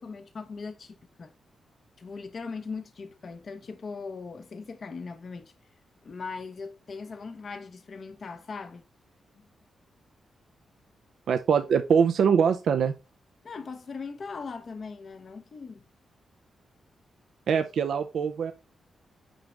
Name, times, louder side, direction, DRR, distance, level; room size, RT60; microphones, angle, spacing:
voice 1, 0.0-1.3 2.0-5.5 6.0-8.8 13.4-15.8, left 4 dB, 55° left, 0.8 m, -39 dB
voice 2, 11.3-12.9 17.5-18.5, right 7 dB, 75° right, 0.5 m, -23 dB
6.2 x 5.1 x 3.3 m
cardioid pair, 60°, 0 cm